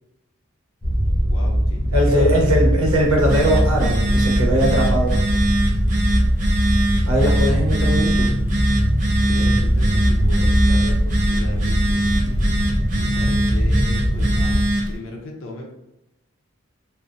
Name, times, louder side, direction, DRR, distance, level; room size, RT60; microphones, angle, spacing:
sound 1, 0.8-14.7, equal, 20° left, 0.5 m, -20 dB
voice 1, 1.3-2.7 9.2-12.4 13.0-15.7, left 2 dB, 70° left, 0 dB, 0.5 m, -37 dB
voice 2, 1.9-5.2 7.1-8.3, equal, 85° right, -2 dB, 0.7 m, -20 dB
Telephone, 3.0-15.0, right 1 dB, 35° right, 0.4 m, -24 dB
2.6 x 2.1 x 2.3 m, 0.88 s
head